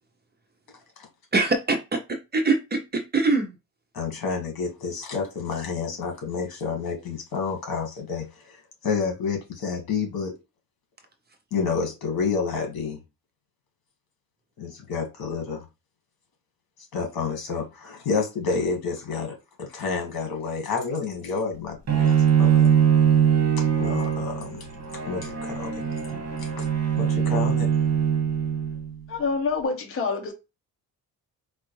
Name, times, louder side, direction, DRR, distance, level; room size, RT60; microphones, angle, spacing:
voice 1, 1.3-3.6, right 3 dB, 25° right, 0.5 m, -24 dB
voice 2, 3.9-8.6 8.8-10.3 11.5-13.0 14.6-15.6 16.9-22.8 23.6-24.7 25.0-25.8 26.4-26.7 27.0-27.7, left 5 dB, 75° left, 1.6 m, -29 dB
Bowed string instrument, 21.9-28.9, right 8 dB, 45° right, 1.3 m, -22 dB
voice 3, 29.1-30.3, left 4 dB, 40° left, 0.8 m, -26 dB
4.2 x 2.4 x 3.0 m
cardioid pair, 155°, 36 cm